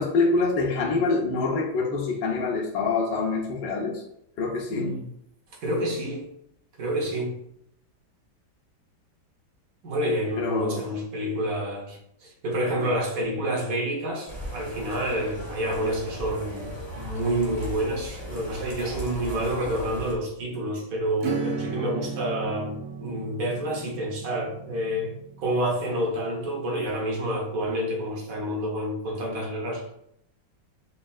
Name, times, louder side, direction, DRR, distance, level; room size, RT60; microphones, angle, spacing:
voice 1, 0.0-4.0 4.4-4.9 10.4-10.8, left 3 dB, 70° left, -2 dB, 1.2 m, -25 dB
voice 2, 4.7-5.1 5.6-6.3 6.8-7.3 9.8-25.1 25.4-29.9, right 1 dB, 55° right, 0 dB, 1.1 m, -28 dB
sound 1, 14.3-20.1, right 1 dB, 35° right, 0.4 m, -37 dB
Acoustic guitar / Strum, 21.2-27.4, right 6 dB, 80° right, 0.7 m, -36 dB
5.2 x 2.8 x 2.3 m, 0.76 s
omnidirectional pair, 2.1 m